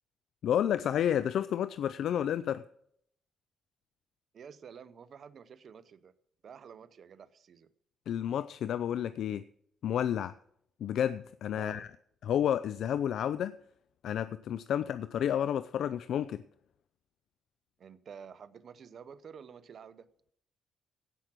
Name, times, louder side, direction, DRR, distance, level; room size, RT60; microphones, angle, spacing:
voice 1, 0.4-2.6 8.1-9.4 9.8-10.3 10.8-11.9 12.2-13.6 14.0-16.4, left 10 dB, 70° left, 0.4 m, -30 dB
voice 2, 4.3-6.1 6.4-7.7 11.5-11.8 17.8-20.1, right 7 dB, 55° right, 0.7 m, -50 dB
16.0 x 6.0 x 6.1 m
cardioid pair, 90°, 0 cm